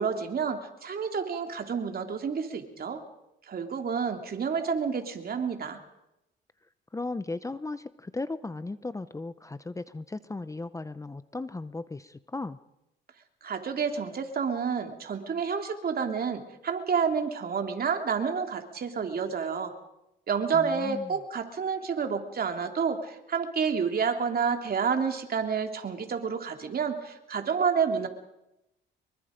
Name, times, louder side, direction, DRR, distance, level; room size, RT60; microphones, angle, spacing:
voice 1, 0.0-3.0 3.5-5.8 13.4-19.7 20.3-28.1, right 6 dB, 50° right, 5 dB, 3.1 m, -29 dB
voice 2, 6.9-12.6 20.5-21.1, left 3 dB, 15° left, 14 dB, 0.8 m, -36 dB
25.0 x 23.0 x 5.2 m, 0.90 s
cardioid pair, 90°, 20 cm